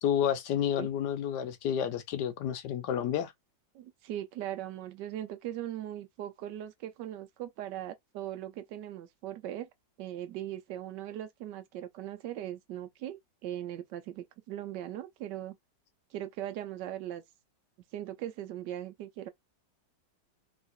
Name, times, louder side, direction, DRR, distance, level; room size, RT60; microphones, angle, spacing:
voice 1, 0.0-3.3, left 9 dB, 75° left, 1.2 m, -30 dB
voice 2, 3.7-9.7 10.0-15.6 16.1-17.2 17.9-19.3, right 12 dB, 80° right, 1.2 m, -39 dB
3.1 x 2.9 x 2.5 m
omnidirectional pair, 1.9 m